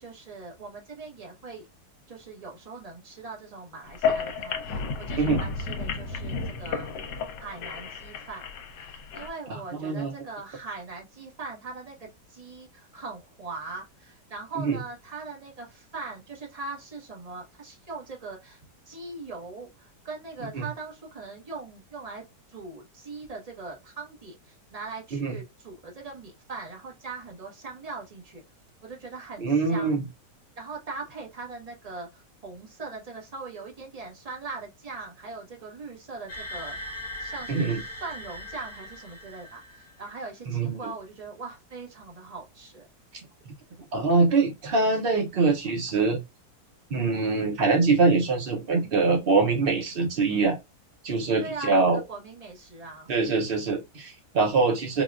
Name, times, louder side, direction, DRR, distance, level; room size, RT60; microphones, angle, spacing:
voice 1, 0.0-1.7 2.1-6.9 7.4-8.5 8.9-18.6 18.9-22.2 22.5-28.4 28.8-30.0 30.6-42.9 51.4-53.1, right 3 dB, 30° right, 0.8 m, -40 dB
sound 1, 3.9-9.3, left 5 dB, 75° left, 1.3 m, -32 dB
voice 2, 9.5-10.1 14.6-14.8 20.5-20.7 25.1-25.4 29.4-30.1 37.5-37.8 40.5-40.8 43.5-43.6 43.9-46.2 46.9-50.6 51.0-52.0 53.1-55.0, right 4 dB, 85° right, 0.5 m, -24 dB
sound 2, 36.3-40.1, left 1 dB, 10° left, 0.9 m, -39 dB
4.0 x 2.2 x 2.3 m
omnidirectional pair, 1.9 m